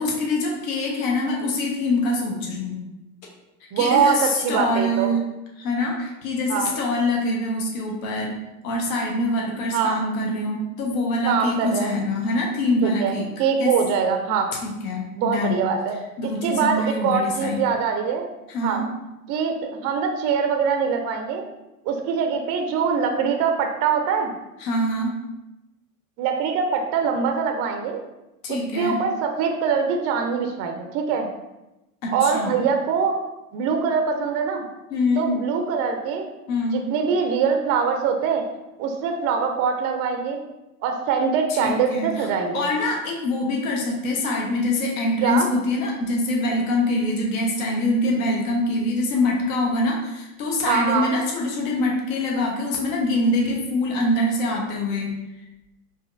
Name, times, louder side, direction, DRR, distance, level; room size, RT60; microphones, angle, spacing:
voice 1, 0.0-2.8 3.8-5.2 5.6-8.3 8.6-13.3 13.6-13.7 14.6-15.6 16.2-17.6 18.5-18.9 24.6-25.2 28.4-29.0 32.0-32.6 34.9-35.3 36.5-36.8 41.5-42.3 42.5-55.1, left 2 dB, 60° left, -1 dB, 1.0 m, -24 dB
voice 2, 3.7-5.1 6.5-6.7 9.7-10.0 11.2-11.9 12.8-13.1 13.4-14.5 15.1-16.0 16.2-18.2 18.6-18.8 19.3-21.4 21.9-24.3 26.2-28.0 28.5-31.3 32.1-33.1 33.5-34.7 35.2-36.2 36.7-38.4 38.8-40.4 40.8-42.6 45.2-45.5 50.7-51.1, right 6 dB, 35° right, 5 dB, 0.5 m, -23 dB
4.9 x 2.7 x 2.5 m, 0.97 s
hypercardioid pair, 85°, 46 cm